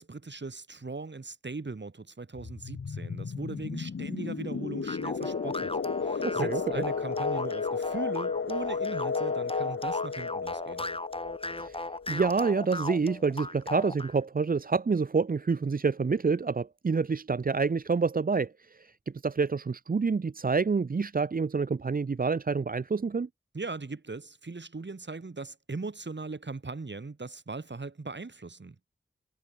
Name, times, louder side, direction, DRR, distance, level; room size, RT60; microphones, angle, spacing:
voice 1, 0.0-10.8 23.5-28.9, right 3 dB, 60° right, 3.9 m, -39 dB
sound 1, 2.4-12.9, left 5 dB, 80° left, 1.4 m, -33 dB
sound 2, 4.9-14.2, left 2 dB, 25° left, 1.7 m, -37 dB
voice 2, 6.2-6.8 11.6-23.3, right 4 dB, 45° right, 0.6 m, -28 dB
cardioid pair, 45°, 21 cm